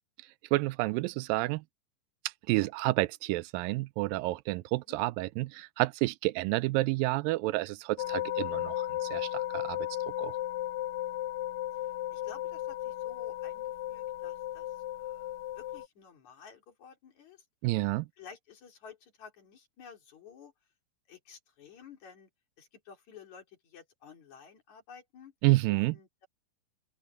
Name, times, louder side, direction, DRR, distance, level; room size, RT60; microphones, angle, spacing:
voice 1, 0.5-1.6 2.5-9.8 10.2-10.4 17.6-18.1 25.4-26.0, right 20 dB, 85° right, 2.3 m, -29 dB
sound 1, 8.0-15.9, left 13 dB, 80° left, 2.4 m, -35 dB
voice 2, 11.7-17.4 18.2-20.5 21.1-22.3 22.6-25.3 25.7-26.3, left 6 dB, 55° left, 4.8 m, -53 dB
open air
omnidirectional pair, 4.0 m